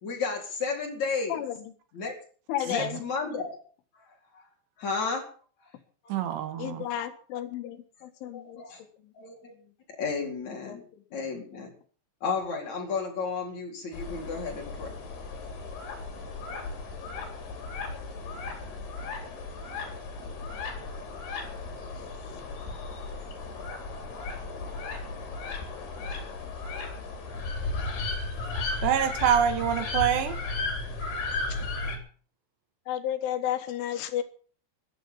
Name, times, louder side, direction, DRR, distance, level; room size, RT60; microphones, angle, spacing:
voice 1, 0.0-1.4 1.9-2.1 2.7-3.6 4.3-4.4 4.8-5.3 6.0-6.1 8.3-8.8 9.1-9.5 10.0-10.8 11.1-11.7 12.2-14.9, left 4 dB, 40° left, 5.3 m, -32 dB
voice 2, 1.3-1.7 2.5-3.1 6.6-8.6 9.0-9.1 10.7-11.0 31.5-31.6 32.9-34.2, left 11 dB, 85° left, 4.1 m, -32 dB
voice 3, 6.1-6.9 28.8-30.4, right 9 dB, 70° right, 3.5 m, -25 dB
sound 1, 13.9-32.0, left 3 dB, 60° left, 5.7 m, -35 dB
15.0 x 12.5 x 7.2 m
omnidirectional pair, 5.4 m